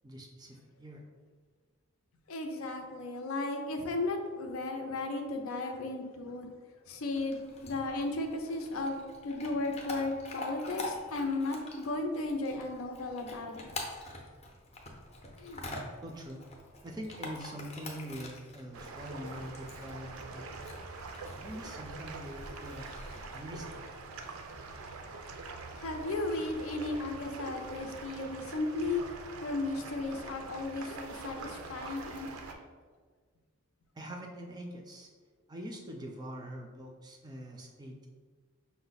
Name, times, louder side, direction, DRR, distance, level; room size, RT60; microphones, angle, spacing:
voice 1, 0.0-1.1 16.0-16.4 16.8-20.5 21.4-22.9 23.3-23.9 34.0-35.1 35.5-38.1, equal, 20° right, 2 dB, 0.4 m, -44 dB
voice 2, 2.3-6.5 6.9-13.7 15.4-15.6 25.8-29.0 29.4-32.6, left 2 dB, 75° left, 4 dB, 0.5 m, -35 dB
Chewing mastication / Dog, 7.1-23.7, left 2 dB, 30° left, 0.5 m, -46 dB
sound 1, 18.7-32.5, right 3 dB, 80° right, 0.4 m, -44 dB
5.5 x 2.1 x 3.9 m, 1.5 s
head